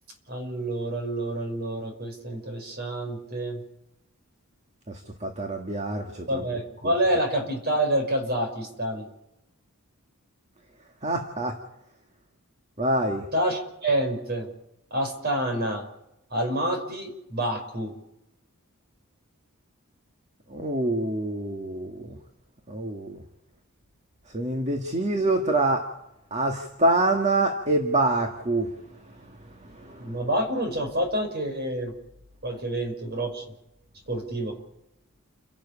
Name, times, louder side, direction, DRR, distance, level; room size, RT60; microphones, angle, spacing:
voice 1, 0.3-3.6 6.3-9.1 13.3-14.5 14.9-15.8 16.3-17.9 30.0-31.9 32.4-33.4 34.1-34.5, right 1 dB, 45° right, 4 dB, 5.9 m, -28 dB
voice 2, 4.9-6.4 11.0-11.5 12.8-13.2 20.5-22.1 22.7-23.2 24.3-25.8 26.3-28.7, right 2 dB, 30° right, 4 dB, 2.0 m, -25 dB
30.0 x 12.5 x 8.6 m, 0.85 s
head